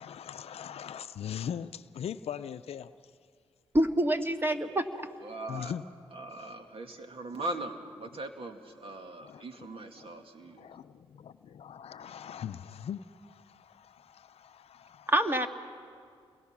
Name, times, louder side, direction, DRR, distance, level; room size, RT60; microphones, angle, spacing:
voice 1, 0.0-2.9 5.5-5.8 9.2-9.4 10.0-10.1 10.6-15.1, left 8 dB, 70° left, 12 dB, 0.6 m, -41 dB
voice 2, 3.7-4.9 15.1-15.5, right 1 dB, 20° right, 6 dB, 1.8 m, -26 dB
voice 3, 5.2-5.7 6.1-10.7, right 2 dB, 60° right, 5 dB, 2.2 m, -40 dB
29.5 x 22.5 x 6.0 m, 2.2 s
supercardioid pair, 50°, 11 cm